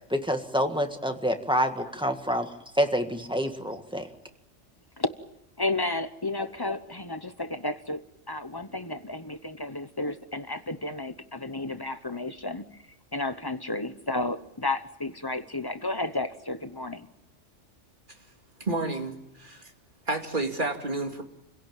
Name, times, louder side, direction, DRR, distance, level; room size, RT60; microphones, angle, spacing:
voice 1, 0.1-2.5 2.8-4.1, equal, 5° right, 5 dB, 1.7 m, -27 dB
voice 2, 5.6-8.0 8.3-12.8 13.1-17.1, left 2 dB, 20° left, 11 dB, 0.9 m, -32 dB
voice 3, 18.6-19.7 20.1-21.2, right 2 dB, 40° right, 4 dB, 2.6 m, -30 dB
28.5 x 17.0 x 9.1 m, 0.86 s
omnidirectional pair, 1.3 m